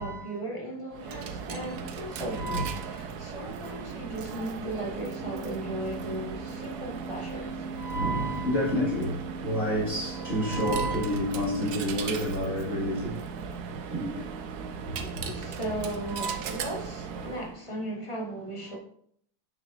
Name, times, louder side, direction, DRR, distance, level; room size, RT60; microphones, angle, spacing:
voice 1, 0.0-7.6 15.3-18.8, right 1 dB, 20° left, 1.1 m, -36 dB
Coin (dropping), 0.9-17.6, right 5 dB, 65° right, 1.1 m, -37 dB
voice 2, 2.3-2.8 3.4-3.5 7.8-13.2 13.9-14.2 14.8-15.3 16.1-16.3 17.2-17.3 18.7-18.8, equal, 40° left, 2.4 m, -29 dB
9.4 x 6.1 x 2.5 m
omnidirectional pair, 2.1 m